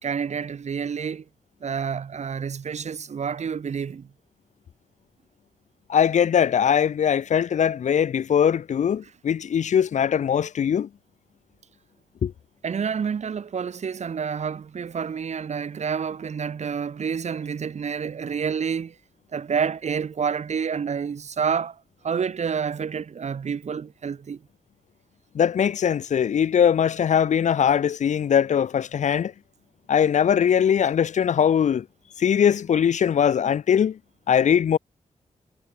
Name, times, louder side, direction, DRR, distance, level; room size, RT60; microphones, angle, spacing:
voice 1, 0.0-1.2 1.6-4.1 12.6-18.9 19.3-21.8 22.0-24.4, right 6 dB, 65° right, 1.2 m, -28 dB
voice 2, 5.9-10.9 12.2-12.3 25.3-29.3 29.9-31.8 32.2-34.0 34.3-34.8, left 8 dB, 70° left, 0.6 m, -21 dB
cardioid pair, 60°, 13 cm